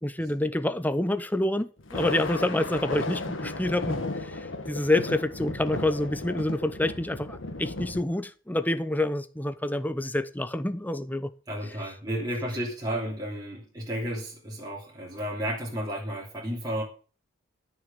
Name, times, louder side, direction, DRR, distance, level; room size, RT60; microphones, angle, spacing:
voice 1, 0.0-11.3, left 1 dB, 10° left, 0.8 m, -28 dB
Thunder, 1.8-8.0, left 2 dB, 70° left, 1.9 m, -34 dB
voice 2, 11.5-16.8, equal, 20° right, 3.2 m, -32 dB
13.0 x 6.6 x 6.8 m
head